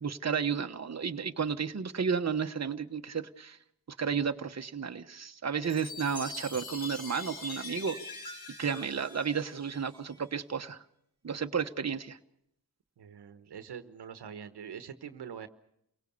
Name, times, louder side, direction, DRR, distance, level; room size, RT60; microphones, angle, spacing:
voice 1, 0.0-3.6 4.0-8.0 8.6-10.8 11.2-12.2, right 6 dB, 40° right, 6 dB, 1.2 m, -32 dB
Chime, 5.6-10.2, left 3 dB, 65° left, 4.4 m, -43 dB
voice 2, 13.0-15.5, right 7 dB, 85° right, 10 dB, 1.3 m, -44 dB
28.5 x 18.0 x 6.9 m, 0.79 s
cardioid pair, 50°, 39 cm